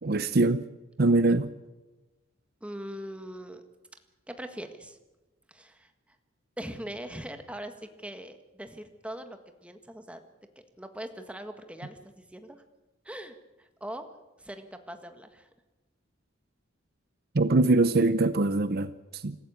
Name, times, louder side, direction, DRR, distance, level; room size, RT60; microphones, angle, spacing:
voice 1, 0.0-0.6 1.0-1.5 17.3-19.4, right 2 dB, 55° right, 0.7 m, -23 dB
voice 2, 2.6-3.6 4.3-5.0 5.5-5.9 6.6-10.2 10.8-12.6 13.1-14.1 14.4-15.5, right 1 dB, 5° right, 1.6 m, -41 dB
26.5 x 14.0 x 8.6 m
head